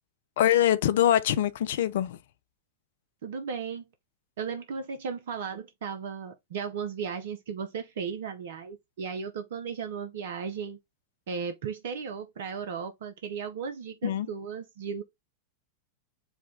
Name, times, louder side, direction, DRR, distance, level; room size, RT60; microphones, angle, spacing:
voice 1, 0.4-2.2 14.0-14.3, left 11 dB, 55° left, 0.4 m, -24 dB
voice 2, 3.2-3.9 4.4-10.8 11.3-15.0, right 6 dB, 60° right, 0.6 m, -35 dB
4.8 x 2.2 x 3.7 m
figure-of-eight pair, 90°, 0 cm